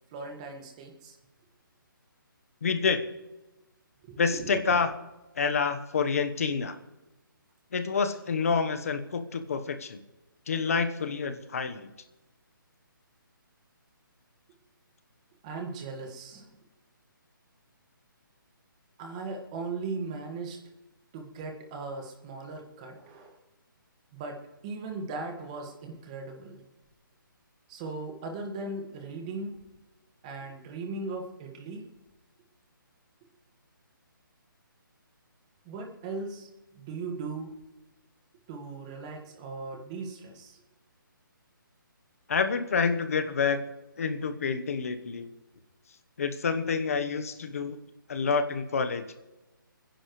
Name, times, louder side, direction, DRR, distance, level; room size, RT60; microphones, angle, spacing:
voice 1, 0.1-1.2 4.0-4.8 15.4-16.5 19.0-20.6 21.1-23.4 24.1-26.6 27.7-29.6 30.2-31.9 35.6-36.5 36.7-37.5 38.5-40.6, right 3 dB, 20° right, 4 dB, 1.7 m, -38 dB
voice 2, 2.6-3.1 4.2-4.9 5.4-6.8 7.7-10.0 10.5-11.9 42.3-43.6 44.0-45.3 46.2-47.8 48.1-49.0, left 5 dB, 40° left, 10 dB, 1.1 m, -28 dB
26.5 x 10.5 x 3.2 m, 1.1 s
hypercardioid pair, 170°, 11 cm